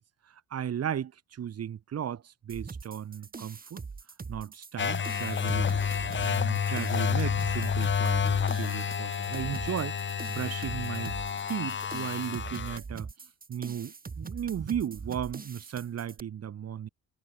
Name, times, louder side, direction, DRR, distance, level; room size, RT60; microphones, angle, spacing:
voice 1, 0.3-3.8 4.3-5.8 6.2-10.0 10.3-11.2 11.5-13.1 13.5-16.9, right 9 dB, 55° right, 2.1 m, -35 dB
sound 1, 2.5-16.2, right 4 dB, 30° right, 2.6 m, -42 dB
sound 2, 4.8-12.8, left 7 dB, 40° left, 1.4 m, -29 dB
cardioid pair, 90°, 30 cm